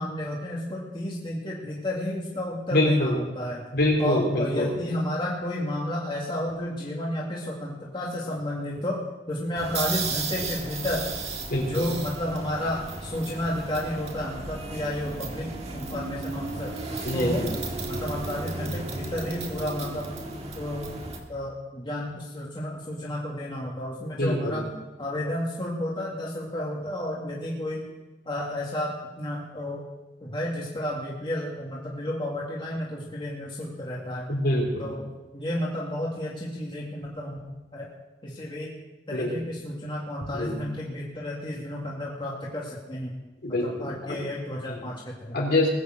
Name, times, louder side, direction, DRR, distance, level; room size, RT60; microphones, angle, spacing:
voice 1, 0.0-3.6 4.0-11.1 11.7-17.5 17.9-20.1 20.6-20.8 21.3-24.7 25.0-27.8 28.3-29.8 30.2-34.3 34.8-35.0 35.3-37.4 37.7-37.9 38.2-38.8 39.1-43.2 43.6-45.4, left 1 dB, 30° left, -4 dB, 2.3 m, -32 dB
voice 2, 2.7-3.2 3.7-4.7 11.5-11.9 17.0-17.5 24.2-24.6 34.3-34.9 39.1-39.3 40.3-40.6 43.4-44.2 44.7-44.8 45.3-45.7, left 1 dB, 65° left, -1 dB, 4.1 m, -25 dB
sound 1, 9.6-21.2, right 3 dB, 35° right, 1.8 m, -34 dB
20.0 x 7.0 x 7.9 m, 1.1 s
head